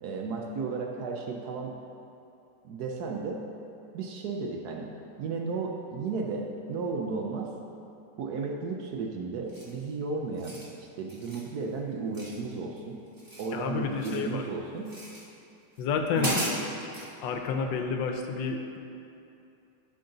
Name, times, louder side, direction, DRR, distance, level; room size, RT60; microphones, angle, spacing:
voice 1, 0.0-1.7 2.6-3.4 3.9-4.9 5.2-7.5 8.2-13.0 13.4-14.9 16.2-16.4, right 4 dB, 70° right, 1 dB, 1.0 m, -34 dB
sound 1, 9.5-9.8 10.3-10.7 11.1-11.5 12.1-12.8 13.1-14.3 14.8-15.2 15.8-15.9 16.1-17.1, equal, 15° right, 0.7 m, -36 dB
voice 2, 13.5-14.4 15.8-16.4 17.2-18.8, left 5 dB, 80° left, 4 dB, 1.3 m, -30 dB
11.5 x 3.8 x 3.9 m, 2.7 s
omnidirectional pair, 2.0 m